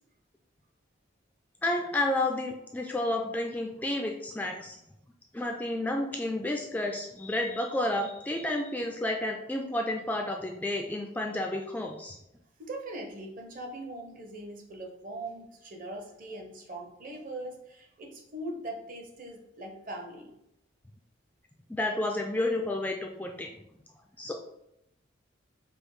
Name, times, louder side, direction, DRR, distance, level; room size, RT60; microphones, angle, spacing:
voice 1, 1.6-4.8 5.3-12.2 21.7-23.5 24.2-24.3, left 1 dB, 10° left, 2 dB, 0.3 m, -31 dB
voice 2, 12.6-20.3, right 1 dB, 45° right, 1 dB, 0.8 m, -41 dB
5.1 x 2.0 x 4.6 m, 0.81 s
head